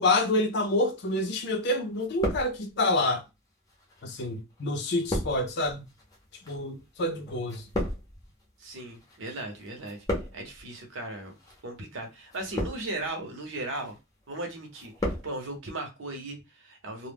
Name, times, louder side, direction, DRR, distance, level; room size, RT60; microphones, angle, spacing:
voice 1, 0.0-3.2 4.0-5.8 6.5-7.6, left 2 dB, 55° left, 0.5 m, -27 dB
sound 1, 1.1-1.7 1.9-3.0 3.7-9.3 9.6-10.6 11.3-11.6 12.3-13.1 13.5-14.0 14.3-15.3 15.6-15.7, left 1 dB, 20° left, 0.6 m, -35 dB
voice 2, 8.6-10.0 10.3-11.4 11.6-14.0 14.3-17.1, right 2 dB, 70° right, 0.8 m, -37 dB
2.2 x 2.1 x 3.4 m
head